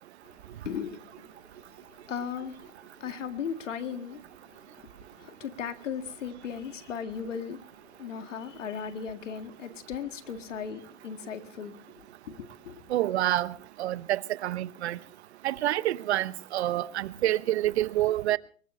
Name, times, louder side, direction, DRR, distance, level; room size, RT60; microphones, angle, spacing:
voice 1, 0.6-1.4 2.1-2.7 3.0-4.2 4.5-7.7 8.0-12.8, left 7 dB, 80° left, 2.0 m, -37 dB
voice 2, 12.9-13.5 13.8-15.0 15.4-18.4, right 14 dB, 60° right, 0.9 m, -27 dB
23.5 x 20.5 x 2.7 m
hypercardioid pair, 130°, 37 cm